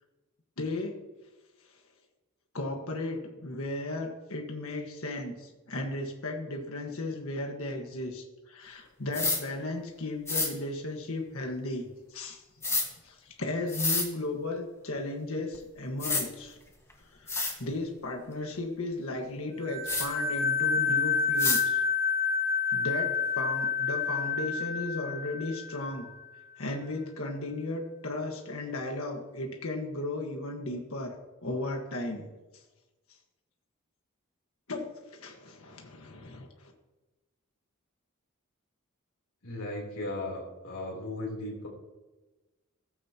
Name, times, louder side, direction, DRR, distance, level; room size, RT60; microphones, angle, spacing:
voice 1, 0.6-1.0 2.5-12.4 13.0-16.6 17.1-21.8 22.7-26.1 26.6-32.3 34.7-36.5, left 2 dB, 70° left, 3 dB, 1.6 m, -35 dB
sound 1, 9.1-9.4 10.3-10.5 12.6-12.9 13.7-14.1 15.5-15.6 16.0-16.2 16.9-17.0 17.3-17.5 19.9-20.1 21.4-21.6, left 3 dB, 15° left, 1.6 m, -28 dB
sound 2, 19.6-26.1, left 5 dB, 35° left, 4.7 m, -29 dB
voice 2, 39.4-41.7, left 1 dB, 85° left, -2 dB, 3.5 m, -36 dB
14.5 x 14.5 x 3.0 m, 1.1 s
head